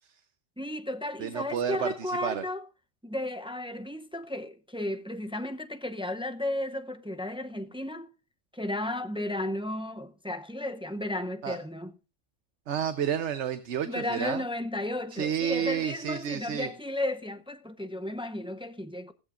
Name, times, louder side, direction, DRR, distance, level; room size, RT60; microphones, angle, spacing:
voice 1, 0.6-2.7 3.0-8.1 8.5-11.9 13.9-19.1, left 1 dB, 10° right, 0.3 m, -34 dB
voice 2, 1.2-2.4 11.4-11.6 12.7-14.4 15.1-16.7, right 8 dB, 70° right, 1.1 m, -30 dB
16.0 x 15.0 x 2.5 m
omnidirectional pair, 1.3 m